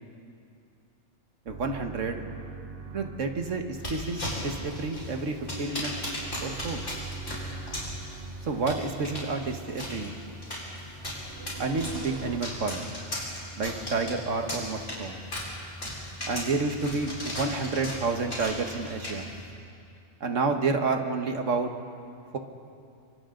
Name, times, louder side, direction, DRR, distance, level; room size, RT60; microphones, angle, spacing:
sound 1, 1.5-12.4, right 5 dB, 50° right, 1.2 m, -43 dB
voice 1, 1.5-2.2 2.9-5.9 6.4-6.8 8.5-10.1 11.6-12.8 13.6-15.2 16.3-19.3 20.2-21.7, right 3 dB, 80° right, 5 dB, 1.8 m, -29 dB
sound 2, 3.7-19.5, left 1 dB, 75° left, 5.3 m, -37 dB
27.5 x 24.5 x 3.9 m, 2.5 s
omnidirectional pair, 1.3 m